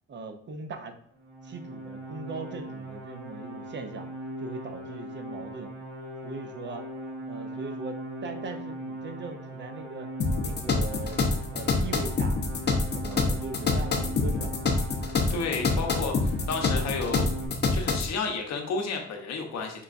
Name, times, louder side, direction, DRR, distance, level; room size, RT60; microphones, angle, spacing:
voice 1, 0.1-1.0 1.4-4.1 4.4-5.7 6.2-6.9 7.2-10.1 10.4-11.2 11.5-14.6, right 3 dB, 40° right, 7 dB, 0.6 m, -40 dB
sound 1, 1.2-17.5, right 1 dB, 70° right, 1.0 m, -40 dB
sound 2, 10.2-18.1, left 3 dB, 35° left, 0.7 m, -26 dB
voice 2, 15.3-17.3 17.7-19.8, left 4 dB, 65° left, 2 dB, 0.9 m, -32 dB
5.3 x 2.2 x 2.5 m, 0.71 s
cardioid pair, 90°, 30 cm